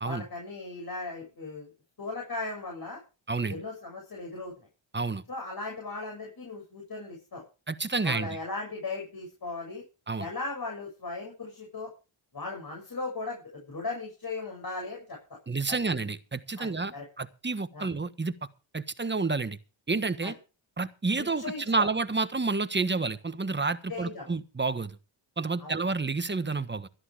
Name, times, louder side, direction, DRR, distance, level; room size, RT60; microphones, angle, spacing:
voice 1, 0.0-1.7 2.0-3.0 3.5-4.5 5.3-7.4 8.0-9.8 10.2-11.9 12.3-13.4 13.7-15.2 15.7-15.8 16.6-17.0 17.7-17.9 20.2-20.3 21.2-21.9 23.9-24.3 25.6-25.8, left 3 dB, 45° left, -1 dB, 7.1 m, -37 dB
voice 2, 3.3-3.6 4.9-5.2 7.7-8.4 10.1-10.3 15.5-18.4 18.7-19.6 19.9-20.4 20.8-25.0 25.4-26.9, right 3 dB, 20° right, 12 dB, 1.4 m, -30 dB
13.5 x 11.0 x 4.9 m, 0.32 s
cardioid pair, 60°, 48 cm